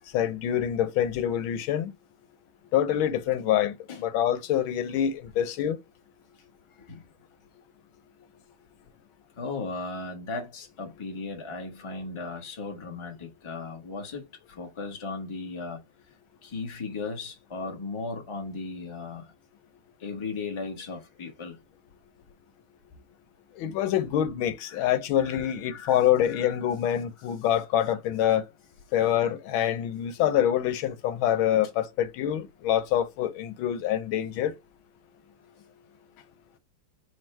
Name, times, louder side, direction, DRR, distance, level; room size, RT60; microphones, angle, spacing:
voice 1, 0.1-1.9 2.7-5.8 23.6-28.5 28.9-34.5, left 10 dB, 90° left, 1.6 m, -26 dB
voice 2, 9.4-14.2 14.5-15.8 16.4-19.3 20.0-21.6 24.6-26.6, left 3 dB, 25° left, 0.7 m, -37 dB
4.4 x 2.3 x 4.4 m
omnidirectional pair, 2.2 m